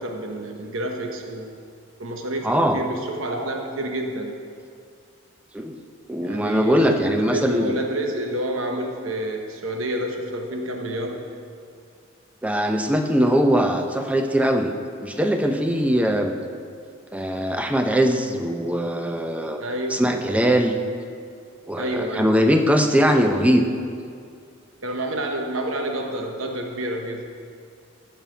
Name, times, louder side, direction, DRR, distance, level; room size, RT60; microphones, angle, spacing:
voice 1, 0.0-1.5 2.0-4.3 6.2-11.2 19.6-20.0 21.8-22.3 22.9-23.5 24.8-27.2, right 1 dB, 85° right, 3 dB, 1.0 m, -29 dB
voice 2, 2.4-2.8 5.5-5.7 6.1-7.7 12.4-14.7 15.0-16.3 17.1-19.6 19.9-20.8 21.7-23.6, equal, 5° right, 5 dB, 0.6 m, -21 dB
14.0 x 5.7 x 5.1 m, 2.3 s
head